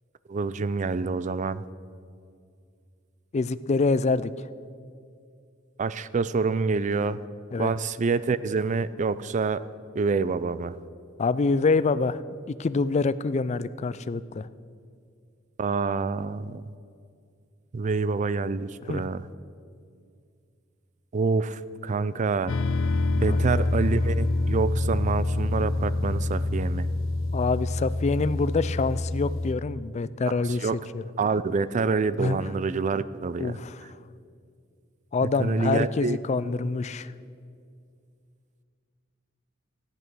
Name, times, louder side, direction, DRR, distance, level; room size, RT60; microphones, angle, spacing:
voice 1, 0.3-1.6 5.8-7.2 7.6-9.6 9.9-10.8 15.6-16.6 17.7-19.2 21.1-22.5 23.2-26.9 30.6-30.8 31.2-33.6 35.2-36.2, right 4 dB, 40° right, 16 dB, 0.4 m, -27 dB
voice 2, 3.3-4.3 7.5-7.7 11.2-12.2 12.5-14.5 18.8-19.0 23.3-23.7 27.3-31.0 32.2-32.4 33.4-33.8 35.1-37.1, left 4 dB, 35° left, 16 dB, 0.4 m, -26 dB
sound 1, 22.5-29.5, left 2 dB, 75° left, 0.6 m, -26 dB
14.0 x 10.0 x 6.1 m, 2.3 s
head